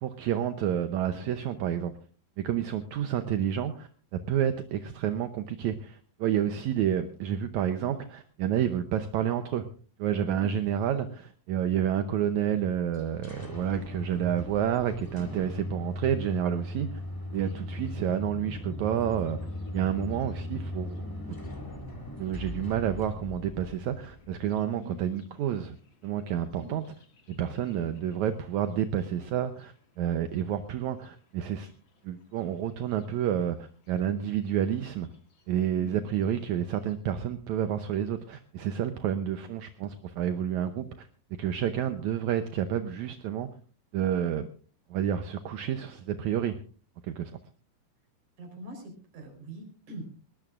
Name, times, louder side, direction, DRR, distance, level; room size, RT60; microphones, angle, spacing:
voice 1, 0.0-1.9 2.4-9.7 10.0-17.0 17.3-19.4 19.7-21.1 22.2-25.7 26.0-26.8 27.3-31.7 32.0-35.1 35.5-41.1 41.4-43.5 43.9-44.5 44.9-46.6 47.0-47.4, right 10 dB, 75° right, 9 dB, 1.8 m, -29 dB
sound 1, 12.9-24.6, left 1 dB, 10° left, 0.9 m, -38 dB
Thunder, 17.4-37.0, left 3 dB, 40° left, 2.4 m, -56 dB
voice 2, 48.4-50.1, right 1 dB, 55° right, 4 dB, 5.6 m, -44 dB
20.0 x 19.5 x 2.5 m, 0.39 s
omnidirectional pair, 4.2 m